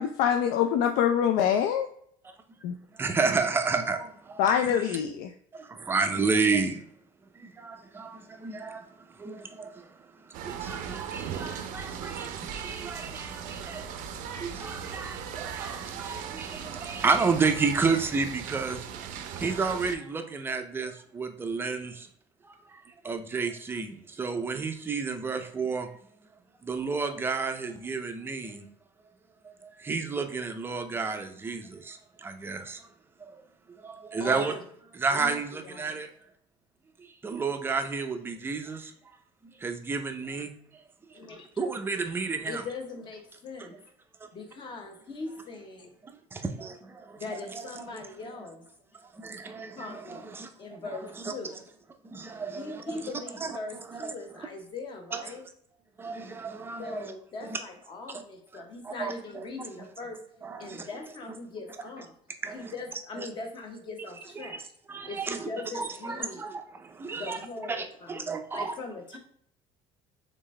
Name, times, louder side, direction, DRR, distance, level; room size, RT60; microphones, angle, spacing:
voice 1, 0.0-1.9 2.6-2.7 4.4-5.3, left 9 dB, 80° left, 0.4 m, -24 dB
voice 2, 3.0-5.0 5.5-6.8 7.3-10.0 10.2-14.0 14.4-22.1 22.4-25.9 26.6-28.7 29.6-32.9 33.2-33.4 33.8-34.6 34.9-36.1 37.2-38.9 39.4-40.6 41.6-42.6 44.2-44.3 46.0-47.6 47.9-48.0 49.1-50.5 50.9-51.3 52.0-53.0 53.4-53.5 53.9-54.1 55.1-55.2 56.0-57.1 57.4-57.6 58.8-59.4 60.4-60.9 62.4-62.7 63.2-63.3 64.4-64.6 64.9-65.5 65.7-67.4 67.7-68.7, right 4 dB, 15° right, 0.4 m, -31 dB
sound 1, 10.3-20.0, right 8 dB, 70° right, 0.5 m, -38 dB
voice 3, 34.2-34.6 35.1-35.4 35.7-35.9 41.1-41.5 42.5-43.8 44.3-45.9 47.2-48.7 49.8-51.6 52.5-55.4 56.8-60.2 60.6-62.1 62.5-64.6 65.1-66.5 67.1-69.2, left 3 dB, 35° left, 0.9 m, -40 dB
3.8 x 3.5 x 3.2 m
cardioid pair, 150°, 14 cm